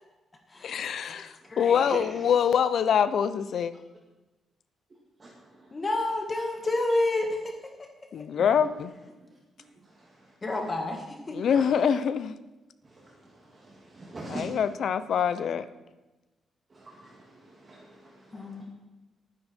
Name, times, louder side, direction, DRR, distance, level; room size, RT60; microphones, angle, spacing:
voice 1, 0.6-3.7 8.1-8.9 11.3-12.4 14.3-15.7, left 7 dB, 65° left, 14 dB, 0.7 m, -25 dB
voice 2, 1.4-2.1 5.7-7.9 10.4-11.4 18.3-18.6, left 2 dB, 25° left, 3 dB, 1.7 m, -30 dB
voice 3, 13.9-14.4 16.7-17.2 17.6-18.4, right 2 dB, 30° right, -3 dB, 2.4 m, -40 dB
22.5 x 10.0 x 4.5 m, 1.1 s
cardioid pair, 130°, 0 cm